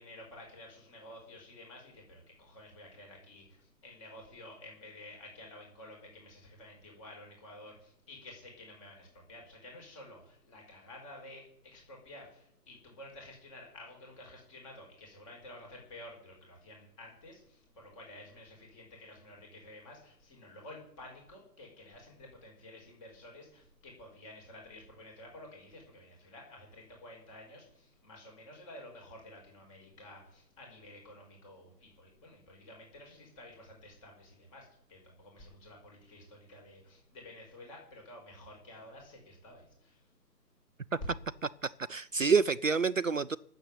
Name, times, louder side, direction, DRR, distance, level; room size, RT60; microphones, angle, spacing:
voice 1, 0.0-40.0, left 1 dB, 20° left, 0 dB, 5.3 m, -52 dB
voice 2, 41.6-43.4, right 5 dB, 50° right, 14 dB, 0.6 m, -28 dB
12.5 x 8.1 x 9.3 m, 0.75 s
figure-of-eight pair, 150°, 50 cm